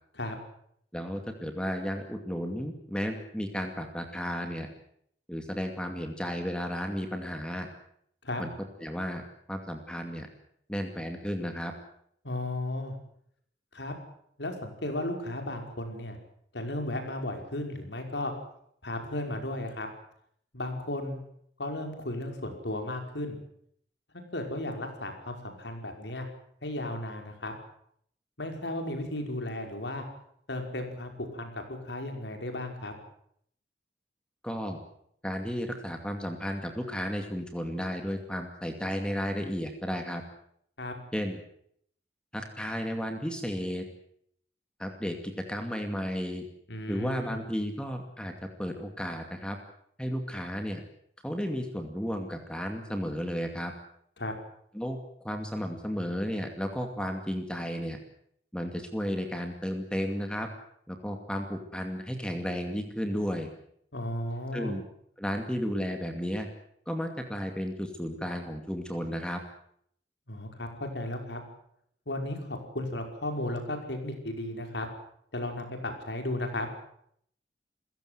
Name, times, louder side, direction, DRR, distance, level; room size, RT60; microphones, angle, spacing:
voice 1, 0.9-4.7 5.3-7.7 8.4-8.5 8.8-9.2 9.5-10.3 10.7-11.7 34.4-34.8 35.2-40.2 41.1-41.4 42.3-43.8 44.8-46.5 46.9-48.3 48.6-49.6 50.0-50.8 51.2-53.7 54.7-58.0 58.5-60.5 60.9-63.5 64.5-64.8 65.2-66.5 66.9-69.4, equal, 5° left, 5 dB, 2.4 m, -33 dB
voice 2, 12.2-13.0 13.7-13.9 14.4-16.2 16.5-18.3 18.8-19.9 20.5-21.2 21.6-23.4 24.3-26.3 26.6-27.5 28.4-30.0 30.5-32.9 40.8-40.9 46.7-47.4 54.2-54.3 63.9-64.7 70.3-71.4 72.1-74.9 75.3-76.7, left 1 dB, 90° left, 4 dB, 5.4 m, -34 dB
29.0 x 16.5 x 8.0 m, 0.67 s
head